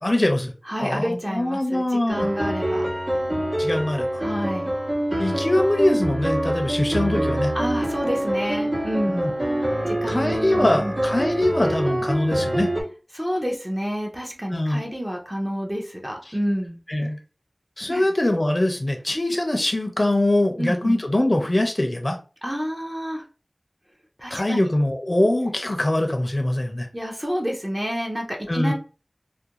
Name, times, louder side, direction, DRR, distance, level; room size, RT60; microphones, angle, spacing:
voice 1, 0.0-0.5 0.8-2.3 3.6-4.1 5.2-7.5 9.1-9.3 10.1-12.7 14.5-14.8 16.9-17.2 17.8-22.2 24.3-26.9 28.5-28.7, left 1 dB, 45° left, 4 dB, 0.4 m, -22 dB
voice 2, 0.7-2.9 4.2-4.7 7.5-9.3 9.9-10.9 13.1-16.8 17.9-18.1 20.6-21.0 22.4-23.2 24.2-24.7 26.9-28.7, equal, 20° right, 0 dB, 0.5 m, -29 dB
sound 1, 2.1-12.8, right 1 dB, 75° right, 1.1 m, -25 dB
2.4 x 2.1 x 2.8 m, 0.34 s
wide cardioid pair, 40°, 0 cm